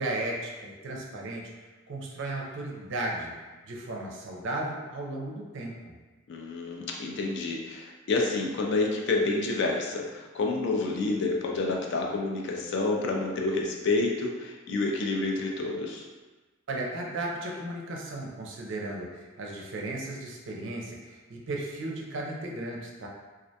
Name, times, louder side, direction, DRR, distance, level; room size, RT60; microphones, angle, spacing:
voice 1, 0.0-1.5 1.9-3.3 3.6-5.9 16.7-23.1, right 2 dB, 60° right, -1 dB, 0.5 m, -35 dB
voice 2, 6.3-16.0, left 3 dB, 55° left, 0 dB, 0.3 m, -29 dB
2.3 x 2.1 x 2.7 m, 1.2 s
head